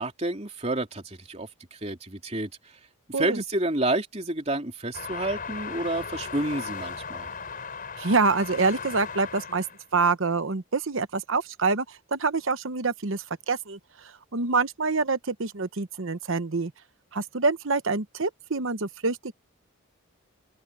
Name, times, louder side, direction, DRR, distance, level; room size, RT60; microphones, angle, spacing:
voice 1, 0.0-2.5 3.1-7.3, right 2 dB, 30° right, 3.4 m, -29 dB
sound 1, 4.9-9.8, left 5 dB, 40° left, 5.0 m, -37 dB
voice 2, 8.0-9.6 9.9-13.8 14.3-16.7 17.1-19.3, right 4 dB, 65° right, 1.0 m, -26 dB
open air
head